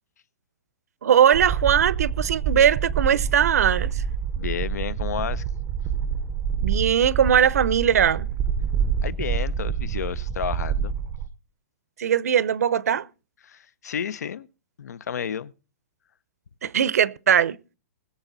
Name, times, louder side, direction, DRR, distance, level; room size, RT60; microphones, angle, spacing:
voice 1, 1.0-4.0 6.6-8.3 12.0-13.1 16.6-17.6, right 9 dB, 70° right, 0.7 m, -20 dB
sound 1, 1.3-11.3, right 7 dB, 10° right, 0.5 m, -27 dB
voice 2, 4.4-5.4 9.0-11.0 13.4-14.5 14.8-15.5, left 8 dB, 90° left, 0.7 m, -31 dB
20.5 x 7.0 x 3.9 m
hypercardioid pair, 180°, 9 cm